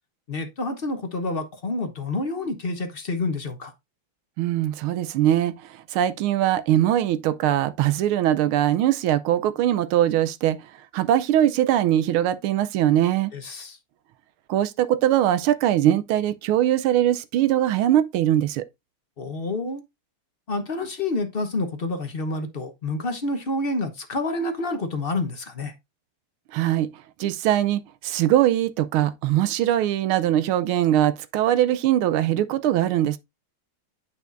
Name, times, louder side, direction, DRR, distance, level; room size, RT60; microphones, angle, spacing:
voice 1, 0.3-3.7 13.3-13.8 19.2-19.8 20.5-25.7, left 2 dB, 40° left, 0.8 m, -28 dB
voice 2, 4.4-10.6 10.9-13.3 14.5-18.6 26.5-26.9 27.2-33.2, right 12 dB, 80° right, 1.5 m, -21 dB
9.0 x 5.7 x 2.5 m
omnidirectional pair, 2.3 m